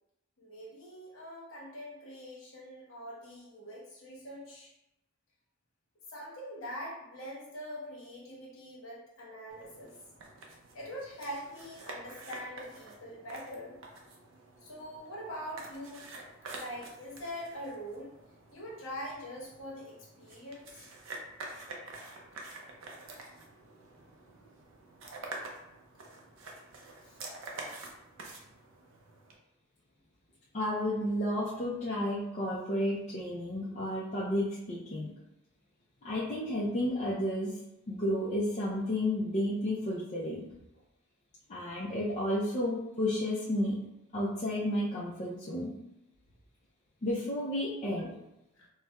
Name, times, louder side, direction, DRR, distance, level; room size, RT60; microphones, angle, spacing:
voice 1, 0.4-4.7 6.1-9.9 10.7-13.7 14.6-16.1 16.5-18.1 18.5-20.9 27.0-27.1, equal, 65° left, -5 dB, 1.1 m, -43 dB
sound 1, 9.5-29.4, right 2 dB, 65° right, 0.5 m, -48 dB
voice 2, 30.5-35.1 36.0-37.6 37.9-40.5 41.5-43.8 44.1-45.7 47.0-48.1, left 1 dB, 35° left, -7 dB, 0.5 m, -32 dB
4.2 x 2.1 x 2.3 m, 0.89 s
head